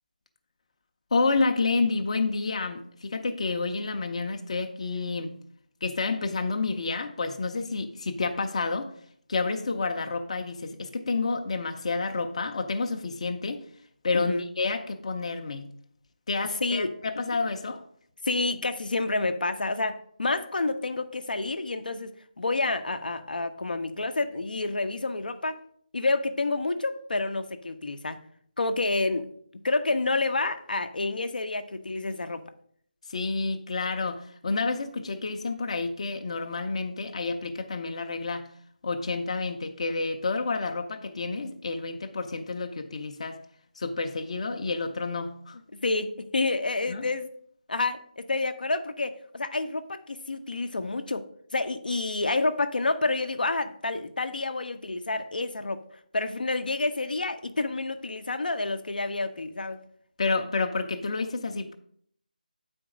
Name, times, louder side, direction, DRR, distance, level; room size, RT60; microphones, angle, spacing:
voice 1, 1.1-5.3 5.8-8.9 9.3-13.7 14.0-15.7 16.3-17.8 33.1-38.5 38.8-43.4 43.8-45.6 46.9-47.1 60.2-61.7, left 3 dB, 45° left, 0.7 m, -29 dB
voice 2, 14.1-14.4 16.6-16.9 18.2-25.6 25.9-28.2 28.6-29.3 29.6-32.4 45.7-47.3 47.7-51.2 51.5-55.8 56.1-59.8, left 3 dB, 75° left, 0.8 m, -29 dB
8.7 x 4.4 x 5.0 m
figure-of-eight pair, 165°, 5 cm